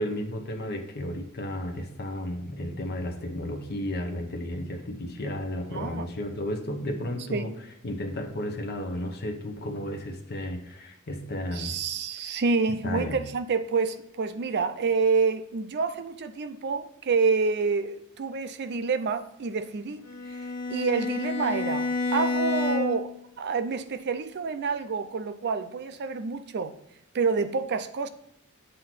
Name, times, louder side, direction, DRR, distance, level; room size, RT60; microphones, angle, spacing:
voice 1, 0.0-7.5 7.8-11.8 12.8-13.2, left 1 dB, 50° left, 0.9 m, -33 dB
voice 2, 5.7-6.1 7.3-7.5 11.5-20.0 20.3-26.7 27.1-28.1, right 4 dB, 50° right, 0.4 m, -28 dB
Bowed string instrument, 20.0-23.2, left 3 dB, 80° left, 1.2 m, -29 dB
7.6 x 2.8 x 5.9 m
head